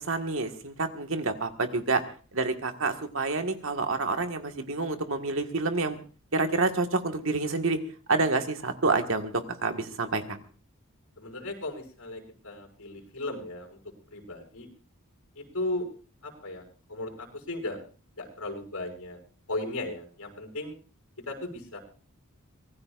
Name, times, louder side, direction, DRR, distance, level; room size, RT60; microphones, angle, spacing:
voice 1, 0.1-2.0 2.3-6.0 6.3-7.8 8.1-10.4, right 3 dB, 65° right, 5 dB, 1.7 m, -28 dB
voice 2, 11.2-13.8 14.1-14.7 15.3-15.8 16.2-16.6 16.9-17.8 18.2-19.2 19.5-20.7 21.3-21.8, left 2 dB, 85° left, 2 dB, 6.4 m, -36 dB
25.0 x 19.0 x 2.5 m, 0.39 s
head